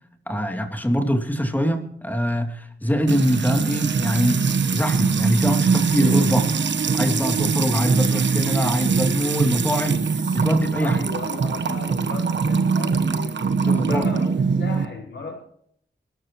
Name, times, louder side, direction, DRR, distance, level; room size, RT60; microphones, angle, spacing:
voice 1, 0.3-6.5 6.9-10.1 10.3-11.0 13.6-14.1, equal, 10° left, 4 dB, 2.9 m, -23 dB
Music / Water tap faucet / Trickle dribble, 3.1-14.9, right 5 dB, 75° right, 1.2 m, -22 dB
voice 2, 10.8-13.4 13.6-15.4, left 3 dB, 75° left, -1 dB, 5.1 m, -35 dB
24.5 x 13.5 x 3.1 m, 0.70 s
cardioid pair, 65°, 19 cm